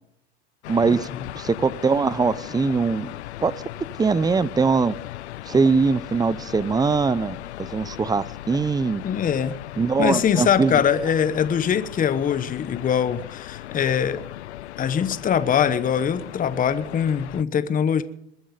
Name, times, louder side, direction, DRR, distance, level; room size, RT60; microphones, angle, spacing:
sound 1, 0.6-17.4, left 15 dB, 85° left, 0.6 m, -38 dB
voice 1, 0.7-1.1 1.4-3.1 3.4-3.5 4.0-4.9 5.5-7.4 7.7-9.0 9.8-10.8, right 4 dB, 10° right, 0.6 m, -21 dB
voice 2, 9.0-9.6 10.0-14.2 14.8-18.0, left 8 dB, 25° left, 1.1 m, -22 dB
21.5 x 10.0 x 5.2 m
hypercardioid pair, 95°, 32 cm